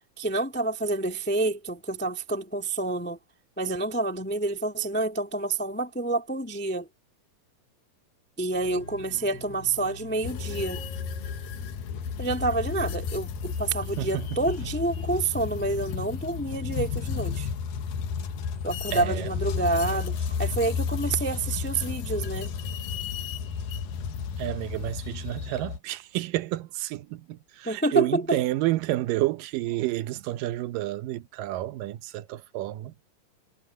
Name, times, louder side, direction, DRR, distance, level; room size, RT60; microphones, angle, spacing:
voice 1, 0.2-3.2 3.6-6.9 8.4-10.8 12.2-17.5 18.6-22.5 27.6-28.4, right 2 dB, 10° left, 0.7 m, -28 dB
sound 1, 8.5-13.8, left 2 dB, 45° left, 9.1 m, -46 dB
sound 2, 10.2-25.8, left 6 dB, 85° left, 3.0 m, -32 dB
voice 2, 14.0-14.4 18.9-19.3 24.4-32.9, right 16 dB, 80° right, 2.4 m, -30 dB
omnidirectional pair, 3.8 m